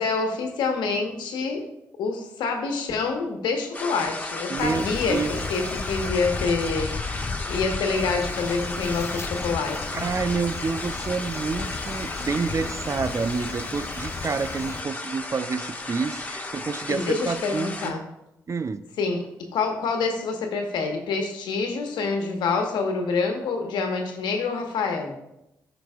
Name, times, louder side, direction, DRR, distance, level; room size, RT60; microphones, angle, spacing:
voice 1, 0.0-1.6 2.0-6.9 7.4-10.1 16.9-18.1 19.0-19.2 19.5-25.1, left 4 dB, 75° left, 3 dB, 1.3 m, -27 dB
sound 1, 3.7-17.9, left 2 dB, 20° left, 1.6 m, -34 dB
voice 2, 4.5-5.5 9.9-18.0 18.5-18.8, right 4 dB, 40° right, 13 dB, 0.6 m, -28 dB
sound 2, 4.6-14.8, left 4 dB, 40° left, 0.4 m, -35 dB
13.5 x 6.0 x 2.4 m, 0.86 s
hypercardioid pair, 40°, 8 cm